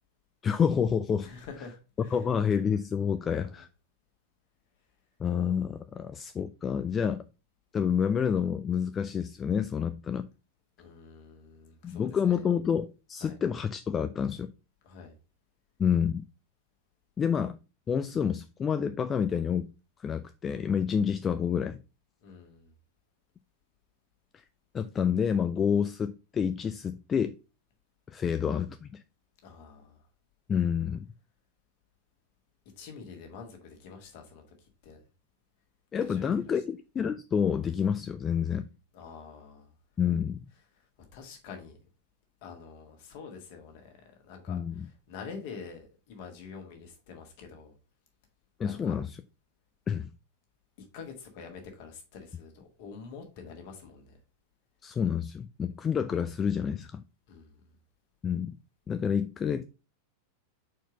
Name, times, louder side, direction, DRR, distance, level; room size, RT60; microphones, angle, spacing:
voice 1, 0.4-1.3 2.1-3.7 5.2-7.2 7.7-10.3 11.8-14.5 15.8-16.2 17.2-17.6 17.9-19.7 20.0-21.8 24.3-24.4 24.7-27.4 28.1-29.0 30.5-31.1 35.9-38.6 40.0-40.5 44.5-44.9 48.6-49.2 49.9-50.1 54.8-57.0 58.2-58.6 58.9-59.6, left 7 dB, 20° left, 0.3 m, -28 dB
voice 2, 1.2-2.2 3.3-3.6 10.8-12.5 13.2-13.4 14.8-15.1 22.2-22.7 29.4-30.0 32.8-35.0 36.0-36.4 38.9-39.7 40.7-41.8 42.4-43.9 44.2-47.7 48.6-49.0 50.8-54.2 57.3-57.6, left 5 dB, 50° left, 1.8 m, -47 dB
4.6 x 4.5 x 5.0 m
figure-of-eight pair, 90°, 0 cm